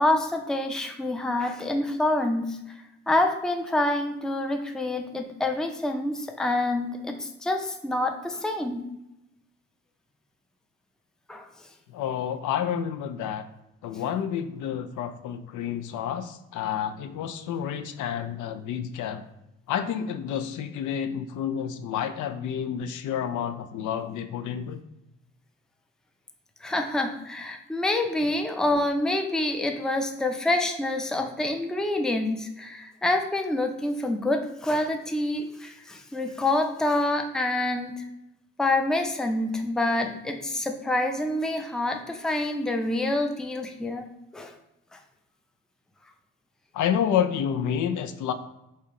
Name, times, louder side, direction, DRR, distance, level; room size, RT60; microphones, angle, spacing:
voice 1, 0.0-2.6 3.1-8.8 11.3-11.5 26.6-38.0 38.6-44.1 44.3-44.5, left 2 dB, ahead, 4 dB, 0.4 m, -27 dB
voice 2, 11.9-13.5 13.8-19.2 19.7-24.8 46.7-48.3, left 8 dB, 75° left, 8 dB, 0.5 m, -29 dB
3.3 x 2.8 x 3.6 m, 0.89 s
cardioid pair, 90°, 30 cm